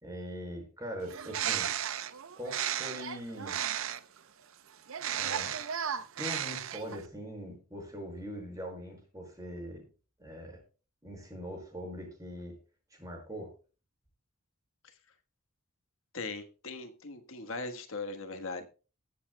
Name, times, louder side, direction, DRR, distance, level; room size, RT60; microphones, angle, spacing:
voice 1, 0.0-1.7 2.4-3.6 5.1-5.6 6.2-9.9 10.2-10.6 11.0-12.6 12.9-13.5, equal, 15° right, 1 dB, 5.0 m, -42 dB
Bird, 1.0-4.2 4.9-7.1, right 9 dB, 65° right, 0.6 m, -34 dB
voice 2, 16.1-18.7, left 3 dB, 60° left, 7 dB, 1.4 m, -39 dB
22.0 x 7.6 x 2.2 m, 0.34 s
head